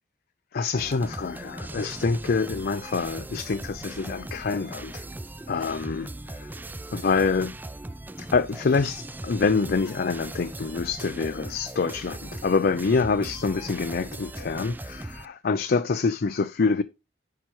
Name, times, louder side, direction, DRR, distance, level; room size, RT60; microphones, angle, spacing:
voice 1, 0.5-5.0 5.5-6.5 6.9-7.5 8.2-16.8, left 4 dB, 55° left, 0.5 m, -26 dB
sound 1, 0.8-15.3, right 2 dB, 10° right, 0.3 m, -39 dB
10.0 x 5.9 x 3.1 m
head